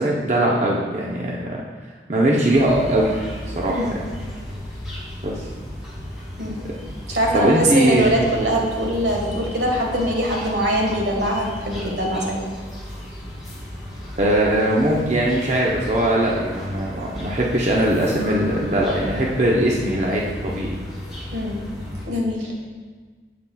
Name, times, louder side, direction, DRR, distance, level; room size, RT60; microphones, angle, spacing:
voice 1, 0.0-1.6 2.1-3.1 3.5-3.9 5.2-5.5 7.3-8.1 14.2-20.8, right 1 dB, 40° right, -4 dB, 0.7 m, -20 dB
sound 1, 2.5-22.1, left 1 dB, 5° right, 2.3 m, -35 dB
voice 2, 7.1-12.4 21.3-21.6 22.1-22.5, right 1 dB, 75° right, -1 dB, 1.5 m, -22 dB
8.8 x 7.7 x 2.3 m, 1.5 s
head